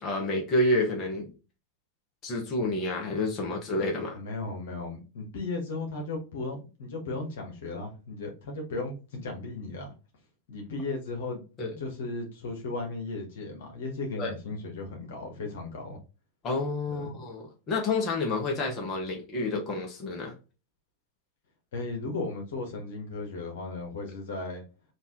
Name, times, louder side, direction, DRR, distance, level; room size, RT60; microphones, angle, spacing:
voice 1, 0.0-1.3 2.2-4.2 11.6-11.7 14.2-14.3 16.4-20.3, left 2 dB, 35° left, 1 dB, 1.5 m, -29 dB
voice 2, 4.1-9.9 10.5-11.4 11.8-16.0 16.9-17.1 21.7-24.6, left 3 dB, 70° left, 1 dB, 1.5 m, -36 dB
4.0 x 2.9 x 3.7 m, 0.31 s
hypercardioid pair, 95°, 0 cm